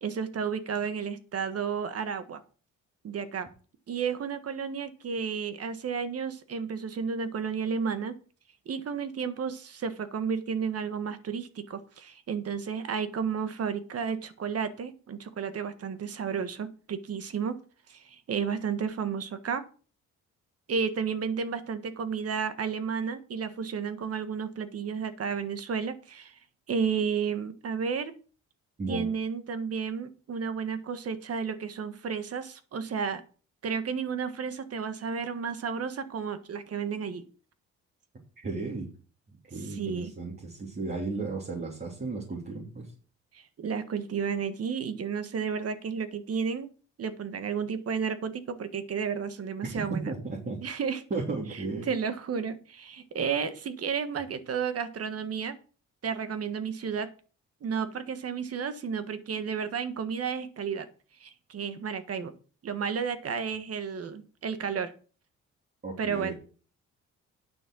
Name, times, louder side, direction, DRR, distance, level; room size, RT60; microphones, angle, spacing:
voice 1, 0.0-2.4 3.0-3.5 3.9-8.1 8.6-17.6 17.9-19.6 20.7-26.4 26.7-28.1 28.9-33.2 33.6-37.2 39.7-40.1 43.3-46.7 47.0-50.1 50.6-51.0 51.9-55.6 56.0-57.1 57.6-60.9 61.2-62.3 62.6-64.9 66.0-66.3, right 6 dB, 50° right, 11 dB, 1.5 m, -32 dB
voice 2, 38.4-38.9 39.5-42.9 49.6-50.6 51.1-51.9 65.8-66.3, right 3 dB, 30° right, -3 dB, 3.2 m, -34 dB
9.5 x 6.5 x 6.2 m, 0.38 s
cardioid pair, 90°, 30 cm